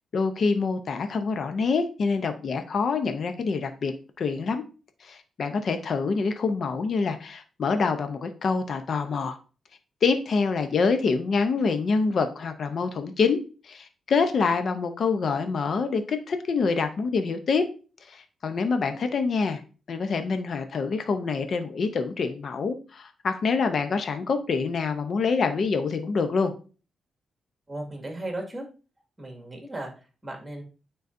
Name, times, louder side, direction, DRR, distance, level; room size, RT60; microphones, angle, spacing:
voice 1, 0.1-4.6 5.0-9.4 10.0-17.7 18.1-19.6 19.9-26.5, left 4 dB, 55° left, 7 dB, 0.7 m, -26 dB
voice 2, 27.7-28.6 29.2-29.9 30.2-30.6, right 1 dB, 15° right, 1 dB, 2.0 m, -35 dB
9.2 x 3.9 x 2.6 m, 0.36 s
cardioid pair, 95°, 0 cm